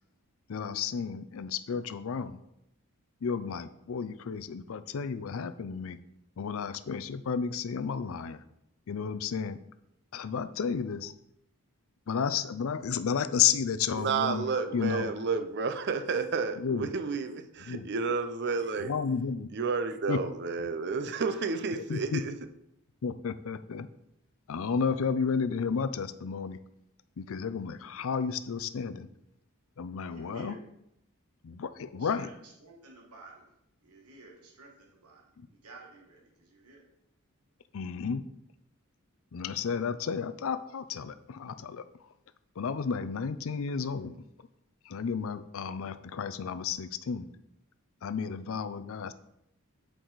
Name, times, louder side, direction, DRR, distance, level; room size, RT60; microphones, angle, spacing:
voice 1, 0.5-2.4 3.2-6.0 6.4-8.4 8.9-9.6 10.1-11.1 12.1-14.5 14.7-15.1 16.6-16.9 17.6-17.9 18.8-19.5 20.1-20.2 21.7-22.2 23.0-23.9 24.5-26.6 27.2-29.1 29.8-30.6 31.4-32.3 35.4-35.5 37.7-38.2 39.3-42.1 42.6-44.5 44.8-47.3 48.0-49.1, left 6 dB, 65° left, 13 dB, 0.4 m, -32 dB
voice 2, 13.9-18.9 19.5-22.3, right 4 dB, 50° right, 8 dB, 0.6 m, -31 dB
voice 3, 30.1-30.6 32.0-33.4 33.8-36.8, right 3 dB, 90° right, -1 dB, 1.3 m, -52 dB
7.9 x 4.8 x 4.0 m, 0.80 s
head